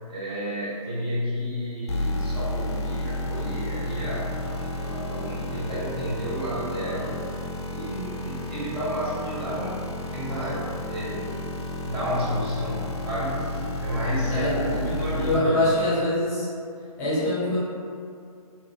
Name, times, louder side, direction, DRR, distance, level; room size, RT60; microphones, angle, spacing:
voice 1, 0.1-7.2 7.7-11.2 11.8-15.8, equal, 40° right, -8 dB, 1.0 m, -31 dB
sound 1, 1.9-15.4, left 1 dB, 45° left, 0.4 m, -32 dB
voice 2, 14.3-14.9 15.2-16.5 17.0-17.6, left 1 dB, 25° left, -9 dB, 0.7 m, -24 dB
3.0 x 2.6 x 2.8 m, 2.4 s
figure-of-eight pair, 135°, 19 cm